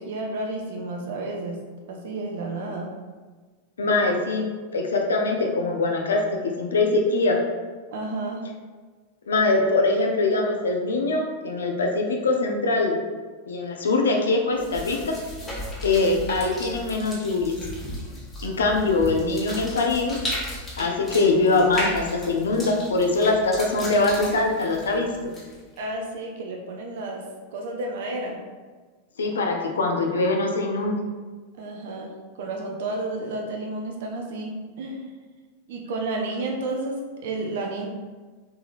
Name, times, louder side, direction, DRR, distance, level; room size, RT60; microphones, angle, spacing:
voice 1, 0.0-1.6 1.9-2.9 7.9-8.4 25.8-27.3 27.5-28.4 29.2-29.4 31.6-32.1 32.4-35.1 35.7-37.0 37.2-37.9, right 2 dB, 55° right, 1 dB, 0.5 m, -31 dB
voice 2, 3.8-7.4 9.3-12.9 13.5-15.2 15.8-17.6 18.4-20.2 20.7-25.3 29.2-31.0, left 3 dB, 70° left, 2 dB, 0.5 m, -23 dB
sound 1, 14.6-25.8, left 1 dB, 15° left, 1.2 m, -35 dB
3.5 x 3.2 x 2.6 m, 1.4 s
figure-of-eight pair, 90°, 0 cm